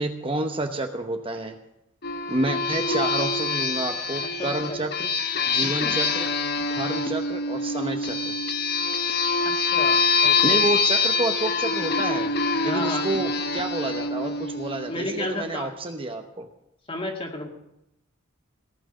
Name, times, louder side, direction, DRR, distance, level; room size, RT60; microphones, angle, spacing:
voice 1, 0.0-1.6 2.3-5.1 5.5-6.3 6.7-8.3 10.4-12.3 12.6-16.5, right 2 dB, 25° right, 5 dB, 0.9 m, -29 dB
sound 1, 2.0-15.2, left 4 dB, 50° left, 1.0 m, -25 dB
voice 2, 2.8-3.3 4.4-4.8 5.6-5.9 9.4-10.6 12.6-13.2 14.9-15.7 16.9-17.5, left 1 dB, 25° left, 2 dB, 2.1 m, -33 dB
18.0 x 6.0 x 9.9 m, 0.83 s
head